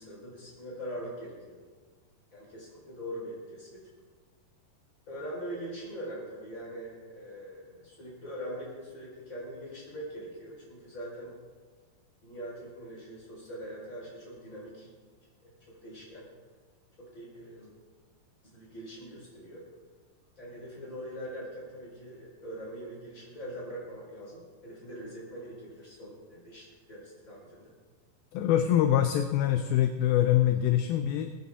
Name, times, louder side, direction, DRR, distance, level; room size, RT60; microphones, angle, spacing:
voice 1, 0.0-1.6 2.3-3.9 5.1-11.3 12.2-14.9 15.4-16.3 17.0-17.7 18.4-19.6 20.4-27.7, equal, 20° left, -5 dB, 4.8 m, -42 dB
voice 2, 28.3-31.3, left 11 dB, 80° left, 8 dB, 2.3 m, -24 dB
22.0 x 9.7 x 3.7 m, 1.5 s
omnidirectional pair, 4.7 m